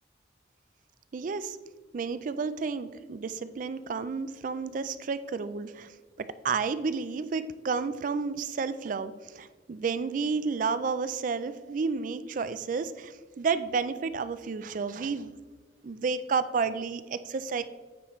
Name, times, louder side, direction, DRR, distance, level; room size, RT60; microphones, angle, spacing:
voice 1, 1.1-1.6 1.9-5.9 6.4-15.4 15.8-17.6, right 5 dB, 45° right, 13 dB, 0.3 m, -31 dB
9.1 x 4.8 x 3.0 m, 1.4 s
head